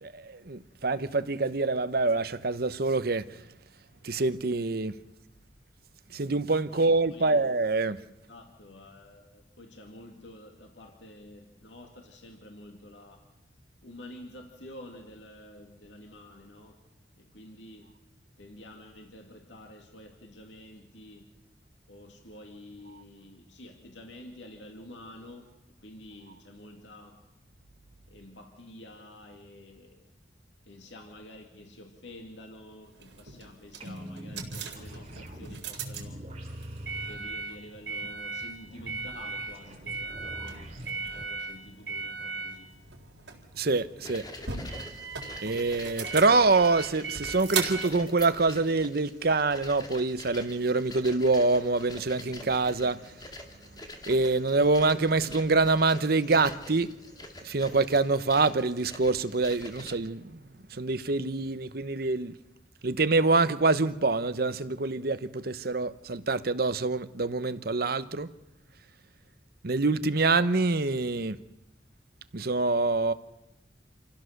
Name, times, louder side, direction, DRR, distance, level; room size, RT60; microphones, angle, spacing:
voice 1, 0.0-3.2 4.0-4.9 6.1-8.0 43.6-44.2 45.4-53.0 54.1-56.9 57.4-60.4 60.7-62.3 62.8-68.3 69.6-71.4 72.3-73.1, right 3 dB, 60° right, 0.9 m, -25 dB
voice 2, 6.7-7.4 8.3-13.3 13.8-16.8 17.2-17.9 18.4-21.3 21.9-25.5 25.8-27.2 28.1-30.1 30.6-36.2 37.1-40.7 41.1-42.7, left 1 dB, 85° left, 2.4 m, -49 dB
sound 1, 32.9-49.4, right 5 dB, 80° right, 3.9 m, -38 dB
sound 2, 33.8-41.2, equal, 35° right, 3.9 m, -43 dB
sound 3, 44.0-59.9, left 2 dB, 25° left, 2.2 m, -46 dB
27.5 x 16.0 x 6.7 m
head